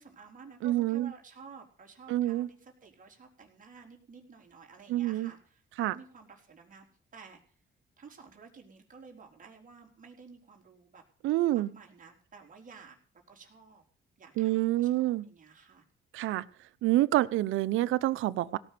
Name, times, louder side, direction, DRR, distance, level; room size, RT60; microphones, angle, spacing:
voice 1, 0.0-6.9 7.1-7.6 8.0-11.0 11.5-13.0 13.3-13.8 14.2-15.9, right 5 dB, 40° right, 0 dB, 4.2 m, -53 dB
voice 2, 0.6-1.1 2.1-2.5 4.9-5.3 5.8-6.0 11.2-11.7 14.4-15.3 16.1-16.4 16.8-18.6, right 15 dB, 90° right, 16 dB, 0.8 m, -27 dB
17.5 x 6.2 x 9.4 m, 0.43 s
cardioid pair, 90°, 20 cm